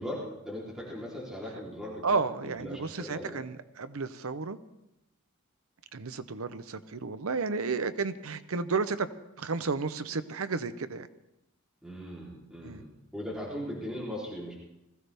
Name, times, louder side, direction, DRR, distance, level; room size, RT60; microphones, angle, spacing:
voice 1, 0.0-3.4 11.8-14.5, equal, 5° right, -7 dB, 3.4 m, -39 dB
voice 2, 2.0-4.6 5.9-9.1 9.4-11.1 12.6-12.8, right 4 dB, 70° right, 12 dB, 0.7 m, -32 dB
20.5 x 15.0 x 3.4 m, 0.89 s
head